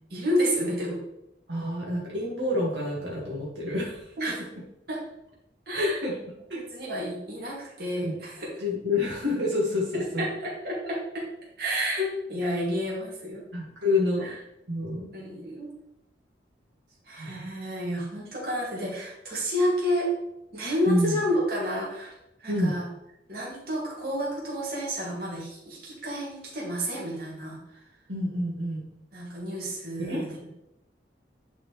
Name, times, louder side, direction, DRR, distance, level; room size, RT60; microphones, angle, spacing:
voice 1, 0.1-1.0 4.2-4.4 4.9-5.0 5.7-6.0 6.6-8.5 10.2-11.2 11.6-13.4 14.2-14.3 15.1-15.7 17.1-20.1 20.5-22.1 22.4-22.8 23.3-27.8 29.1-30.3, equal, 55° right, -5 dB, 2.6 m, -30 dB
voice 2, 1.5-4.1 5.7-6.2 6.5-6.6 8.0-8.1 8.6-10.3 13.5-14.3 14.7-15.1 17.2-17.5 20.9-21.2 22.5-22.7 28.1-28.8 30.0-30.2, left 2 dB, 90° right, -5 dB, 2.1 m, -28 dB
9.7 x 4.5 x 3.3 m, 0.83 s
head